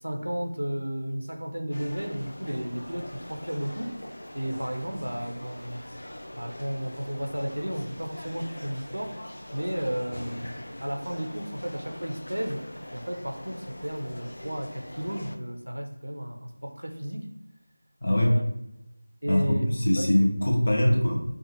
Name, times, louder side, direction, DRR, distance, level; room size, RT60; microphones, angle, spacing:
voice 1, 0.0-3.9 4.3-5.8 6.3-9.2 9.5-12.7 12.9-17.3 18.1-18.5 19.2-19.7 20.0-20.1, equal, 75° right, 4 dB, 0.6 m, -33 dB
sound 1, 1.7-15.4, left 1 dB, 65° left, 0.4 m, -42 dB
voice 2, 18.0-18.4 19.3-21.2, left 1 dB, 45° left, 0 dB, 0.8 m, -22 dB
4.6 x 2.4 x 2.9 m, 0.89 s
figure-of-eight pair, 170°, 0 cm